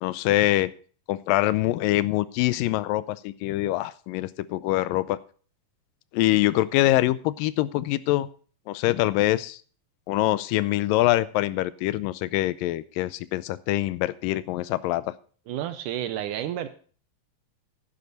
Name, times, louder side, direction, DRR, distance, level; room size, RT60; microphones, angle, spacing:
voice 1, 0.0-0.7 1.1-5.2 6.1-8.3 8.7-9.6 10.1-15.0, left 16 dB, 80° left, 17 dB, 2.3 m, -24 dB
voice 2, 15.5-16.7, right 11 dB, 75° right, 11 dB, 2.1 m, -30 dB
11.5 x 10.5 x 4.0 m, 0.43 s
omnidirectional pair, 4.0 m